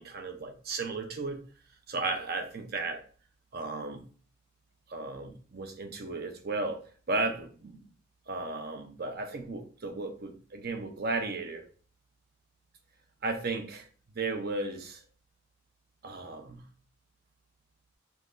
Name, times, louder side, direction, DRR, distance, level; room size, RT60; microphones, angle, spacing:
voice 1, 0.0-1.4 1.9-3.0 3.5-4.0 4.9-7.8 8.3-11.6 13.2-13.9 14.1-15.0 16.0-16.7, right 3 dB, 50° right, 0.7 m, -35 dB
5.6 x 3.0 x 2.5 m
head